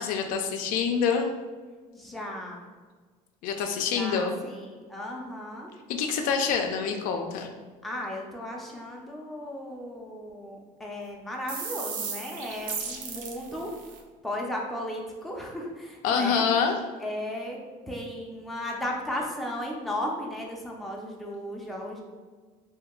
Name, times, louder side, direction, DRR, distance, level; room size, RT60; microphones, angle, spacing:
voice 1, 0.0-1.4 3.4-4.3 5.9-7.5 16.0-16.7, left 6 dB, 70° left, 4 dB, 0.4 m, -26 dB
voice 2, 1.9-2.6 3.9-5.7 7.8-13.8 14.2-16.5 17.0-17.6 17.9-22.0, left 1 dB, ahead, -2 dB, 0.5 m, -35 dB
sound 1, 11.5-14.0, right 5 dB, 65° right, 0.5 m, -36 dB
2.7 x 2.2 x 3.6 m, 1.4 s
cardioid pair, 125°, 15 cm